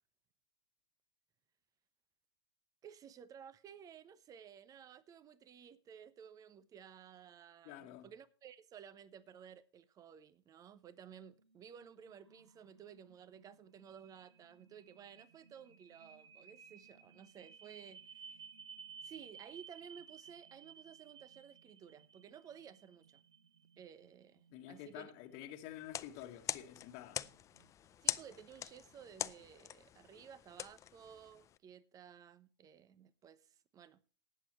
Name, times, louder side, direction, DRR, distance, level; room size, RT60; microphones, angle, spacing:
voice 1, 2.8-18.5 19.0-23.2 23.8-25.1 28.0-34.0, right 8 dB, 25° right, 1.0 m, -55 dB
voice 2, 7.6-8.1 24.5-27.3, left 12 dB, 45° left, 1.6 m, -49 dB
sound 1, 11.4-29.4, right 7 dB, 90° right, 1.5 m, -59 dB
sound 2, 25.8-31.6, left 10 dB, 20° left, 0.5 m, -43 dB
19.0 x 8.2 x 3.1 m
hypercardioid pair, 105°, 14 cm